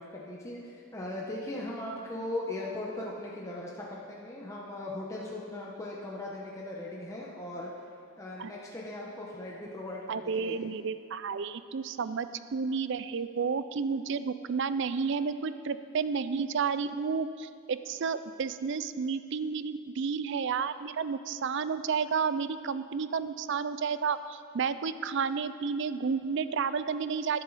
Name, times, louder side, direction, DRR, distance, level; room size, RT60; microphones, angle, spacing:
voice 1, 0.0-7.7 8.2-10.6, left 1 dB, 15° left, -4 dB, 1.1 m, -38 dB
voice 2, 10.1-27.4, right 5 dB, 55° right, 13 dB, 0.4 m, -31 dB
13.0 x 11.0 x 4.1 m, 2.5 s
head